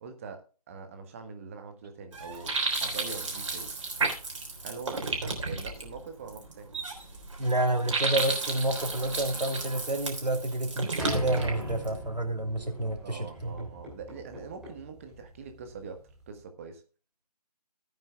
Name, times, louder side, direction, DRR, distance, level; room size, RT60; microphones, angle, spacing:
voice 1, 0.0-2.5 2.8-3.7 4.6-6.7 13.0-16.8, right 5 dB, 20° right, 7 dB, 1.3 m, -43 dB
sound 1, 2.1-12.0, right 3 dB, 45° right, 3.5 m, -33 dB
voice 2, 7.4-13.7, right 1 dB, 80° right, 4 dB, 3.0 m, -29 dB
sound 2, 11.0-16.4, equal, ahead, 2.7 m, -41 dB
17.0 x 9.1 x 2.3 m, 0.35 s
figure-of-eight pair, 150°, 21 cm